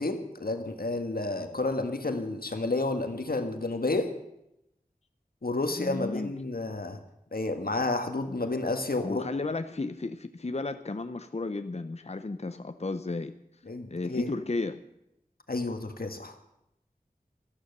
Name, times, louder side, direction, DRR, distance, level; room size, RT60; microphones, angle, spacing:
voice 1, 0.0-4.2 5.4-7.0 7.3-9.2 13.7-14.3 15.5-16.3, left 2 dB, 90° left, 6 dB, 1.7 m, -30 dB
voice 2, 5.8-6.3 9.0-13.3 13.9-14.8, left 3 dB, 45° left, 9 dB, 0.7 m, -33 dB
13.5 x 12.0 x 6.8 m, 0.83 s
wide cardioid pair, 40°, 15 cm